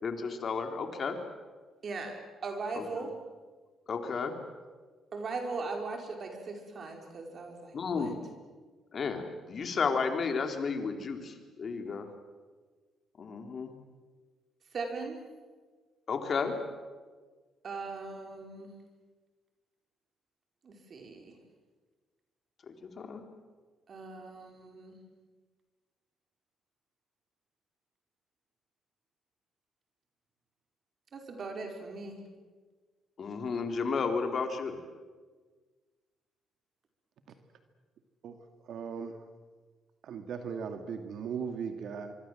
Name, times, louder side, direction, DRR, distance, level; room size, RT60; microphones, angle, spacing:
voice 1, 0.0-1.2 2.7-3.1 3.9-4.3 7.7-8.2 8.9-12.1 13.2-13.7 16.1-16.5 22.7-23.2 33.2-34.8, left 5 dB, 50° left, 5 dB, 3.7 m, -33 dB
voice 2, 1.8-3.1 5.1-8.1 14.7-15.2 17.6-18.7 20.6-21.3 23.9-24.9 31.1-32.2, right 3 dB, 50° right, 3 dB, 5.0 m, -39 dB
voice 3, 38.7-39.2 40.0-42.1, right 6 dB, 70° right, 7 dB, 2.2 m, -37 dB
25.0 x 24.5 x 7.8 m, 1.4 s
cardioid pair, 90°, 0 cm